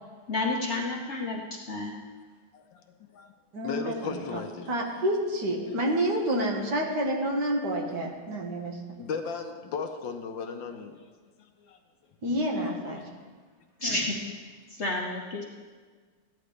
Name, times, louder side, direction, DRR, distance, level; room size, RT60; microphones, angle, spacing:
voice 1, 0.3-2.0 13.8-14.1 14.8-15.4, left 2 dB, 45° left, -1 dB, 1.0 m, -30 dB
voice 2, 2.5-3.3 3.6-4.7 9.0-11.1 11.6-11.8 12.9-13.0 14.2-14.3, left 5 dB, 75° left, 5 dB, 1.5 m, -36 dB
voice 3, 3.5-8.8 12.2-13.0 13.8-14.0, right 1 dB, 60° right, 0 dB, 2.0 m, -29 dB
15.0 x 10.5 x 3.2 m, 1.5 s
omnidirectional pair, 2.1 m